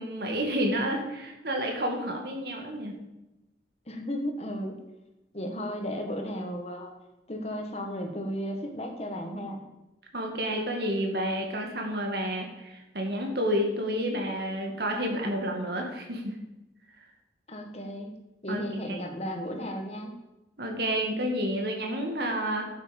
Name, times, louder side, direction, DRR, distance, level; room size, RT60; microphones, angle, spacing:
voice 1, 0.0-3.0 10.1-16.4 18.5-18.6 20.6-22.6, equal, 65° right, 2 dB, 2.2 m, -30 dB
voice 2, 3.9-4.8 5.3-6.9 7.3-9.6 17.5-18.1 18.4-20.1, equal, 35° left, 3 dB, 1.7 m, -34 dB
11.0 x 8.0 x 5.4 m, 0.97 s
head